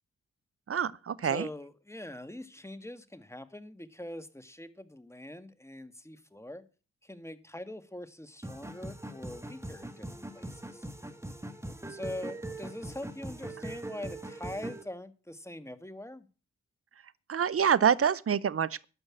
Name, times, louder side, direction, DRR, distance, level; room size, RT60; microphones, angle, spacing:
voice 1, 0.7-1.5 17.3-18.9, right 8 dB, 50° right, 0.9 m, -26 dB
voice 2, 1.2-6.6 7.0-10.9 11.9-16.3, left 1 dB, 10° left, 1.7 m, -43 dB
sound 1, 8.4-14.8, right 1 dB, 10° right, 1.9 m, -41 dB
12.0 x 5.5 x 8.7 m
supercardioid pair, 40°, 30 cm